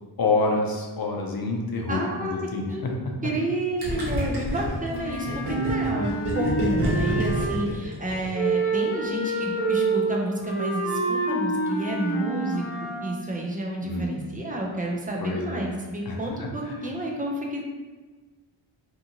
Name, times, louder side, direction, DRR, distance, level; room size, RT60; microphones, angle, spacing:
voice 1, 0.2-3.3 13.8-14.2 15.2-15.7 16.0-16.9, left 3 dB, 45° left, 1 dB, 0.7 m, -28 dB
voice 2, 1.9-2.3 2.7-2.8 3.2-17.6, right 1 dB, 15° right, -1 dB, 0.6 m, -30 dB
Gurgling, 3.8-8.5, equal, 55° right, 1.1 m, -28 dB
Wind instrument woodwind instrument, 4.9-7.8 8.3-13.2, right 3 dB, 25° left, 1.0 m, -27 dB
2.7 x 2.4 x 2.8 m, 1.3 s
cardioid pair, 55°, 49 cm